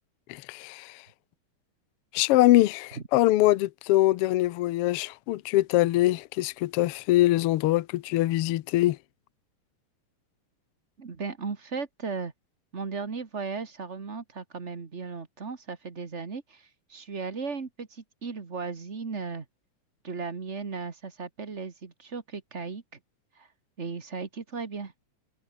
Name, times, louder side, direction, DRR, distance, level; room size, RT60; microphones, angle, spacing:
voice 1, 0.3-1.0 2.1-9.0, left 16 dB, 85° left, 1.2 m, -23 dB
voice 2, 11.0-12.3 12.7-19.4 20.0-22.8 23.3-23.5 23.8-24.9, right 4 dB, 30° right, 1.4 m, -36 dB
omnidirectional pair, 3.6 m